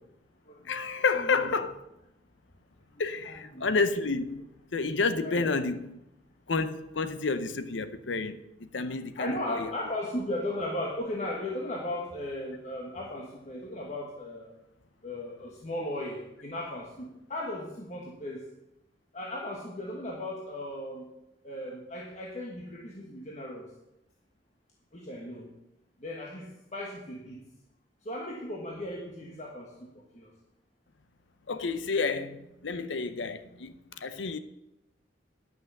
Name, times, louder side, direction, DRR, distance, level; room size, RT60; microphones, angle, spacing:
voice 1, 0.6-1.8 3.0-4.4 4.7-5.9 6.5-9.7 31.5-34.4, left 4 dB, 85° left, 0.7 m, -30 dB
voice 2, 1.1-1.5 2.9-3.7 5.2-5.6 9.1-14.5 15.0-18.4 19.1-21.1 21.4-23.7 24.9-25.5 26.0-27.4 28.0-30.3, left 1 dB, 40° left, 1.3 m, -37 dB
11.0 x 6.1 x 6.6 m
head